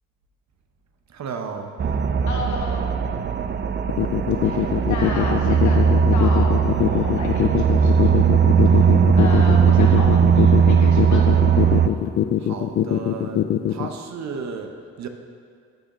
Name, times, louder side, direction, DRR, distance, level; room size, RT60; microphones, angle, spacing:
voice 1, 1.1-1.7 12.4-15.1, right 5 dB, 60° right, 5 dB, 0.9 m, -34 dB
sound 1, 1.8-11.9, right 7 dB, 35° right, 0.5 m, -18 dB
voice 2, 2.3-2.9 4.4-8.1 8.7-11.3, left 3 dB, 65° left, -1 dB, 1.2 m, -33 dB
sound 2, 3.9-13.9, left 11 dB, 45° left, 0.5 m, -21 dB
10.0 x 6.4 x 3.1 m, 2.2 s
supercardioid pair, 50°, 32 cm